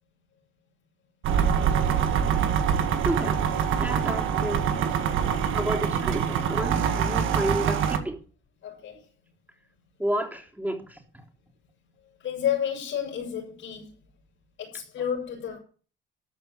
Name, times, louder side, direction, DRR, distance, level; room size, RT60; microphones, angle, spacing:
sound 1, 1.2-8.0, right 8 dB, 85° right, 1.8 m, -24 dB
voice 1, 2.7-3.5 3.8-4.7 5.5-8.2 10.0-11.0, right 1 dB, 10° right, 3.5 m, -31 dB
voice 2, 5.1-5.5 8.6-9.0 12.2-13.9 14.6-15.6, left 9 dB, 80° left, 6.4 m, -31 dB
14.0 x 5.7 x 8.9 m
cardioid pair, 90°, 20 cm